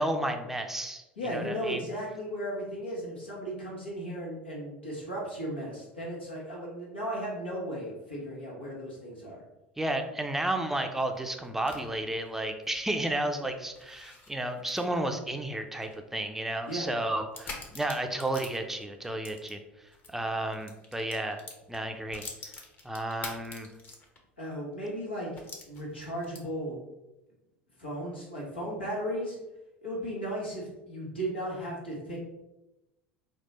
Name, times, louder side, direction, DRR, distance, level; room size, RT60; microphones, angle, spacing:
voice 1, 0.0-1.8 9.8-19.6 20.1-21.4 21.7-22.5 22.8-23.7, right 1 dB, 5° right, 5 dB, 0.5 m, -32 dB
voice 2, 1.2-9.4 16.7-16.9 24.4-26.8 27.8-29.4 29.8-32.2, equal, 85° left, -4 dB, 1.4 m, -36 dB
sound 1, 10.9-20.1 20.5-24.4 24.7-24.8 25.4-26.7, left 3 dB, 35° left, 1.1 m, -47 dB
4.3 x 2.4 x 4.1 m, 0.98 s
hypercardioid pair, 75°, 6 cm